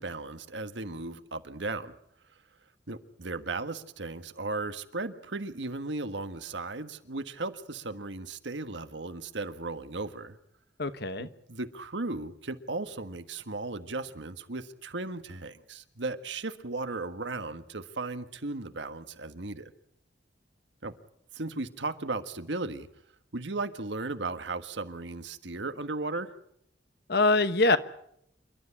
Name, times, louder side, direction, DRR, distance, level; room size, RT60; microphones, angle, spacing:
voice 1, 0.0-1.9 2.9-10.4 11.2-19.7 20.8-20.9 21.3-22.9 23.3-26.3, right 3 dB, 75° right, 10 dB, 1.5 m, -36 dB
voice 2, 10.8-11.3 27.1-27.8, left 2 dB, 60° left, 12 dB, 1.2 m, -23 dB
28.0 x 12.5 x 9.9 m, 0.74 s
head